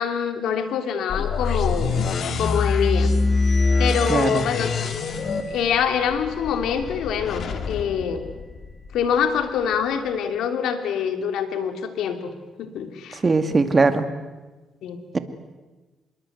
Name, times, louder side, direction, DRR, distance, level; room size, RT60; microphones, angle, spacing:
voice 1, 0.0-1.9 2.4-3.1 3.8-4.7 5.5-8.2 8.9-12.3 12.6-13.2 14.8-15.0, left 7 dB, 80° left, 8 dB, 2.9 m, -25 dB
sound 1, 1.1-9.0, left 3 dB, 60° left, 2.5 m, -25 dB
sound 2, 2.9-8.5, left 2 dB, 25° left, 6.6 m, -43 dB
voice 2, 4.1-4.5 13.2-14.1 15.1-15.2, right 3 dB, 30° right, 10 dB, 2.2 m, -19 dB
26.0 x 22.0 x 8.1 m, 1.2 s
cardioid pair, 90°, 0 cm